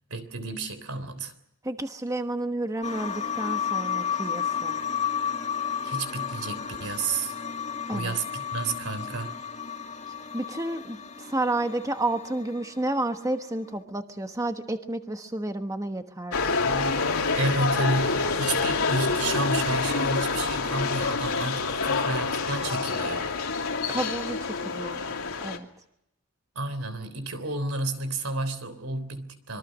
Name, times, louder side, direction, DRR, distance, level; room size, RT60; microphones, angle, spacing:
voice 1, 0.1-1.3 5.8-7.3 7.9-9.4 17.3-23.3 26.6-29.6, right 2 dB, 75° right, 3.4 m, -31 dB
voice 2, 1.6-4.8 7.9-8.2 10.3-16.6 23.9-25.7, right 2 dB, 15° right, 1.2 m, -31 dB
sound 1, 2.8-13.0 13.3-13.4, left 7 dB, 35° left, 2.2 m, -32 dB
sound 2, 16.3-25.6, left 4 dB, 80° left, 2.7 m, -27 dB
26.0 x 23.0 x 6.3 m
head